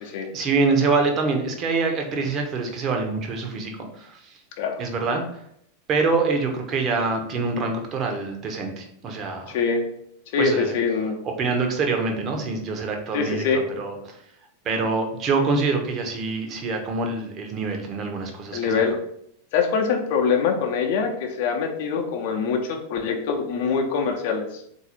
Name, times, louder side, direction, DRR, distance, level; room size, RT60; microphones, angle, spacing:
voice 1, 0.0-4.2 4.8-5.2 5.9-9.6 10.4-10.7 11.2-14.2 14.6-18.8, right 4 dB, 30° right, 3 dB, 0.8 m, -25 dB
voice 2, 9.5-9.8 10.3-11.2 13.1-13.6 18.5-18.9 19.5-24.5, left 5 dB, 50° left, 4 dB, 0.7 m, -23 dB
4.0 x 2.7 x 4.2 m, 0.73 s
figure-of-eight pair, 90°, 0 cm